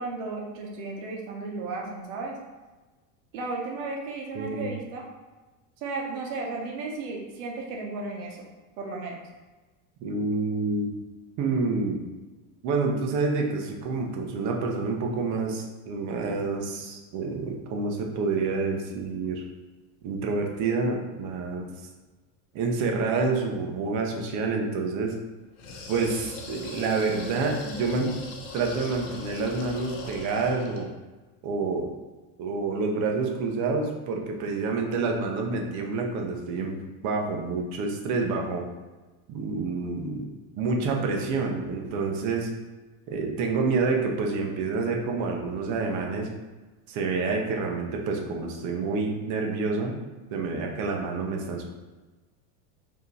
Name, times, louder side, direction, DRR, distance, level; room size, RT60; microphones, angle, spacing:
voice 1, 0.0-2.4 3.3-5.1 5.8-8.5 8.8-9.2, right 3 dB, 65° right, 0 dB, 1.0 m, -34 dB
voice 2, 4.3-4.7 10.0-10.9 11.4-12.0 12.6-19.4 20.0-21.7 22.5-25.2 25.9-28.1 28.5-30.9 31.4-31.9 32.4-38.6 39.3-40.3 40.5-42.5 43.1-46.3 46.9-49.9 50.3-51.6, right 4 dB, 40° right, 1 dB, 0.7 m, -28 dB
sound 1, 25.6-30.9, left 3 dB, 55° left, 0.8 m, -40 dB
4.8 x 2.8 x 3.2 m, 1.2 s
supercardioid pair, 150°, 43 cm